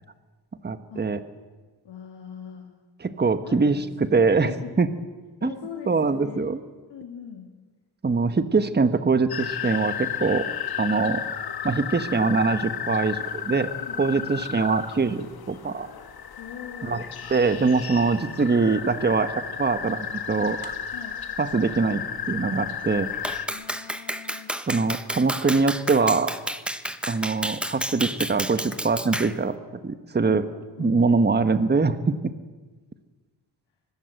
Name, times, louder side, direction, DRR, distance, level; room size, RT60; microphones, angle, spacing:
voice 1, 0.6-1.2 3.0-4.5 4.8-4.9 5.4-5.5 5.9-6.6 8.0-10.5 10.8-11.2 11.6-13.7 14.0-15.9 16.8-17.0 17.3-19.3 19.6-20.7 21.4-22.0 22.3-23.1 24.7-26.3 27.0-29.5 29.8-30.4 30.8-32.3, right 4 dB, 25° right, 11 dB, 1.3 m, -23 dB
voice 2, 1.8-2.7 3.4-4.9 5.4-6.5 6.9-7.5 10.9-11.2 13.8-14.3 16.4-17.0 20.9-21.2 23.5-24.5 30.3-31.0, left 8 dB, 90° left, 1 dB, 3.1 m, -41 dB
sound 1, 9.3-23.5, left 8 dB, 55° left, 1.6 m, -33 dB
Clapping, 23.2-29.4, equal, ahead, 1.0 m, -31 dB
24.5 x 20.5 x 7.9 m, 1.3 s
wide cardioid pair, 120°, 43 cm